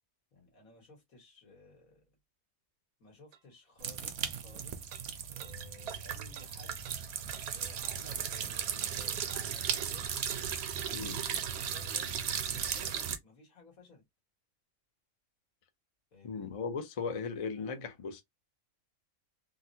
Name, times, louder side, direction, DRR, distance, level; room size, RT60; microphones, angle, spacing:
voice 1, 0.3-2.1 3.0-4.8 5.3-6.8 7.5-10.0 11.4-12.2 12.5-14.0 16.1-16.5, left 2 dB, 85° left, 2.1 m, -57 dB
sound 1, 3.3-3.4 4.9-5.0 5.4-5.5 5.9-6.0 6.3-6.5 6.8-7.0 7.3-7.5 7.8-8.0 8.3-8.5 8.8-8.9 9.3-9.4 9.8-9.9 10.3-10.4 10.8-10.9, right 10 dB, 80° right, 1.0 m, -49 dB
sound 2, 3.8-13.2, right 8 dB, 60° right, 0.7 m, -36 dB
voice 2, 10.9-11.2 16.2-18.2, left 5 dB, 55° left, 0.3 m, -37 dB
3.9 x 2.1 x 2.7 m
omnidirectional pair, 1.4 m